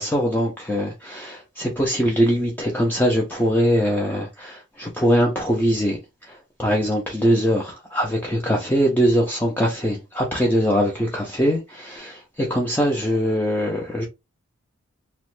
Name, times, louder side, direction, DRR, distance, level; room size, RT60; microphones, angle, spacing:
voice 1, 0.0-14.1, equal, 10° left, 0.4 m, -22 dB
3.0 x 2.1 x 3.0 m
head